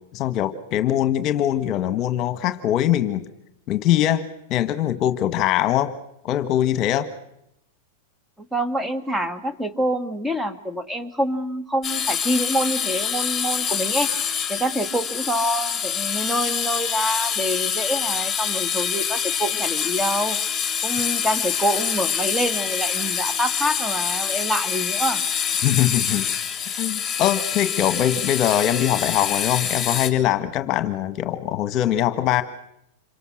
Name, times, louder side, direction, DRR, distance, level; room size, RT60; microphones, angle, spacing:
voice 1, 0.1-3.2 3.7-4.2 4.5-5.9 6.2-7.1 25.6-26.3 26.8-32.4, left 12 dB, 40° left, 11 dB, 1.6 m, -22 dB
voice 2, 8.5-14.1 14.5-20.4 20.8-25.2, equal, 5° right, 9 dB, 2.3 m, -26 dB
sound 1, 11.8-30.1, left 7 dB, 20° left, 3.6 m, -26 dB
27.5 x 24.5 x 6.5 m, 0.79 s
hypercardioid pair, 120°, 0 cm